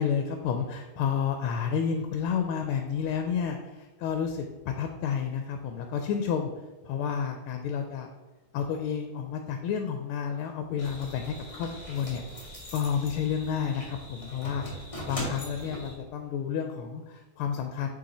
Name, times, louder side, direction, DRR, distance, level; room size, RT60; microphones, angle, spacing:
voice 1, 0.0-6.5 6.8-8.1 8.5-12.2 12.7-17.9, left 7 dB, 85° left, 5 dB, 1.5 m, -30 dB
sound 1, 10.8-15.9, equal, 15° left, 1.5 m, -40 dB
6.4 x 4.4 x 4.2 m, 1.2 s
omnidirectional pair, 2.3 m